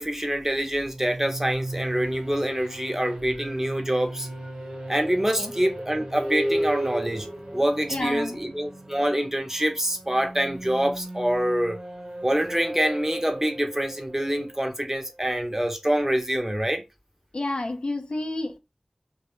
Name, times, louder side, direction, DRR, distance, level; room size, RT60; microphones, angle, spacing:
voice 1, 0.0-4.3 4.9-11.8 12.2-16.8, right 1 dB, 20° right, 0.6 m, -26 dB
sound 1, 0.8-15.5, right 1 dB, 55° right, 0.8 m, -35 dB
voice 2, 7.9-8.4 17.3-18.6, left 2 dB, 60° left, 0.4 m, -30 dB
2.1 x 2.0 x 3.0 m
wide cardioid pair, 50°, 2 cm